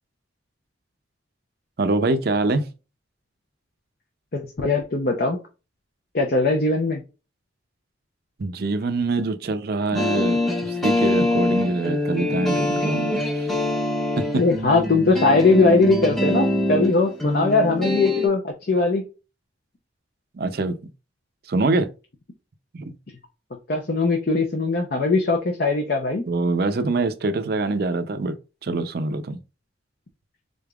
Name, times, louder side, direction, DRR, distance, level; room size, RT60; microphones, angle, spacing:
voice 1, 1.8-2.7 8.4-13.5 14.2-14.4 20.3-20.7 21.5-21.9 22.7-22.9 26.3-28.4 28.6-29.4, right 2 dB, 55° right, 0.5 m, -24 dB
voice 2, 4.3-5.4 6.1-7.0 14.3-19.1 23.7-26.2, left 3 dB, 50° left, 0.6 m, -20 dB
sound 1, 9.9-18.3, left 1 dB, ahead, 0.9 m, -24 dB
3.8 x 3.4 x 2.3 m
head